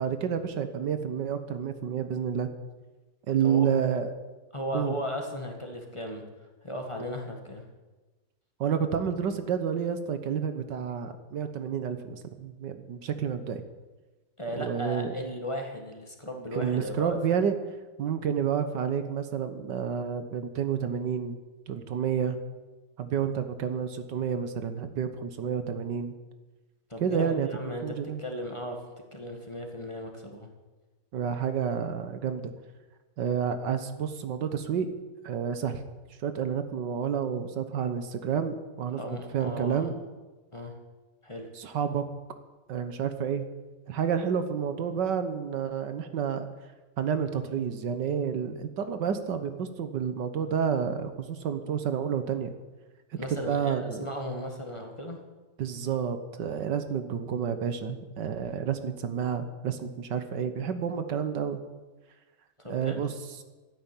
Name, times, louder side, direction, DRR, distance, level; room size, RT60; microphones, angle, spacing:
voice 1, 0.0-2.5 3.3-4.1 4.7-4.9 8.6-13.6 14.6-15.1 16.5-17.5 18.0-21.4 21.7-22.4 23.0-26.1 27.0-27.5 27.8-28.2 31.1-32.4 33.2-34.9 35.2-35.8 36.2-39.0 39.3-40.0 41.6-42.0 42.7-43.4 43.9-46.4 47.0-52.5 53.3-54.1 55.6-61.6 62.7-63.1, right 7 dB, 80° right, 9 dB, 1.8 m, -29 dB
voice 2, 4.5-6.2 6.6-7.6 14.4-17.2 26.9-27.8 28.2-28.8 29.1-30.5 39.0-39.9 40.5-40.7 41.2-41.5 53.2-55.2 62.6-63.1, equal, 15° left, 2 dB, 1.9 m, -36 dB
13.0 x 10.5 x 8.9 m, 1.2 s
omnidirectional pair, 1.9 m